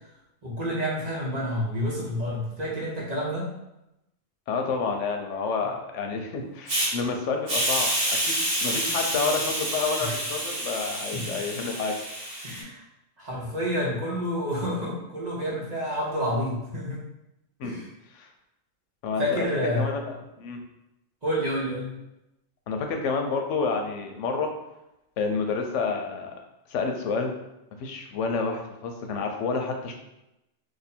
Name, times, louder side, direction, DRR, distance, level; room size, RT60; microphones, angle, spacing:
voice 1, 0.4-3.5 10.0-10.2 11.1-11.3 12.4-12.8 13.2-17.0 17.6-17.9 19.2-19.9 21.2-22.0, equal, 40° right, -5 dB, 0.9 m, -29 dB
voice 2, 4.5-8.3 8.6-12.0 17.6-17.7 18.1-18.3 19.0-19.5 19.8-20.6 22.7-24.5 25.2-26.3 26.7-27.3 27.8-29.9, left 4 dB, 90° left, 4 dB, 1.0 m, -29 dB
Hiss, 6.7-6.9 7.5-12.6, right 1 dB, 55° right, 1.2 m, -28 dB
2.6 x 2.6 x 4.2 m, 0.90 s
omnidirectional pair, 1.2 m